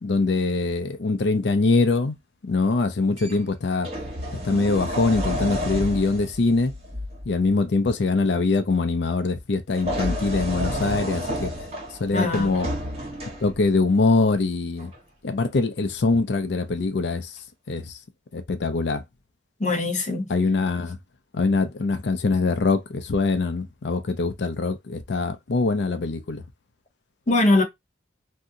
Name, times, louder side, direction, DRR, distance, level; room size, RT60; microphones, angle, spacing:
voice 1, 0.0-2.2 2.4-3.9 4.3-6.7 7.3-11.5 12.0-12.7 13.4-14.9 15.2-17.3 17.7-18.0 18.3-19.0 20.3-21.0 21.3-26.4, left 3 dB, 70° left, 0.5 m, -23 dB
sound 1, 3.2-3.3 3.8-7.3 9.7-13.8 14.8-15.0, equal, 35° right, 1.3 m, -30 dB
voice 2, 12.1-12.6 19.6-20.3 27.3-27.6, left 2 dB, 45° left, 0.9 m, -21 dB
2.7 x 2.0 x 3.7 m
head